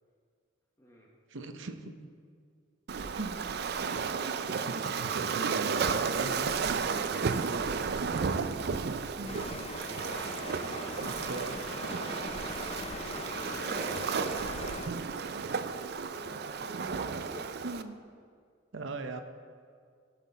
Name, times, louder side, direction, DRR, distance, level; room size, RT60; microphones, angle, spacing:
voice 1, 0.8-1.1 3.6-4.2 9.2-9.5 13.7-17.5, equal, 15° left, -3 dB, 1.1 m, -50 dB
voice 2, 1.3-1.9 3.1-3.5 4.5-6.7 9.2-9.5 11.0-12.0 17.6-18.0 18.7-19.2, right 2 dB, 75° right, 7 dB, 0.8 m, -40 dB
Waves surf, 2.9-17.8, right 5 dB, 55° right, 0.4 m, -33 dB
sound 1, 9.3-14.9, left 2 dB, 30° left, 0.5 m, -41 dB
15.0 x 7.5 x 4.1 m, 2.2 s
head